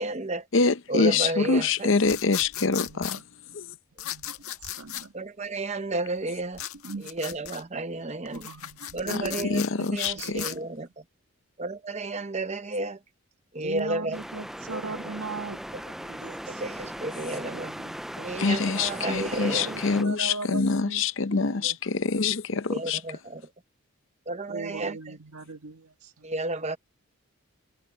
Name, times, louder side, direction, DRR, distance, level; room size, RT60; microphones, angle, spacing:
voice 1, 0.0-0.5 0.9-1.9 5.1-6.6 7.0-8.5 8.9-9.6 9.9-11.0 11.6-13.0 13.5-14.2 14.7-15.1 16.5-17.7 18.2-19.7 22.7-23.5 24.3-25.1 26.2-26.8, right 2 dB, 30° right, 0.8 m, -32 dB
voice 2, 0.5-3.2 3.5-3.7 9.1-10.4 18.4-23.0, left 4 dB, 60° left, 0.7 m, -25 dB
sound 1, 2.0-3.2 4.0-5.1 6.5-7.6 8.3-10.6, left 11 dB, 80° left, 1.6 m, -36 dB
voice 3, 2.6-3.2 4.0-5.1 6.8-7.1 8.3-10.6 13.6-16.9 17.4-18.3 19.3-21.0 21.3-21.8 22.1-22.3 24.5-26.3, right 3 dB, 80° right, 1.7 m, -40 dB
sound 2, 14.1-20.0, equal, ahead, 0.4 m, -38 dB
head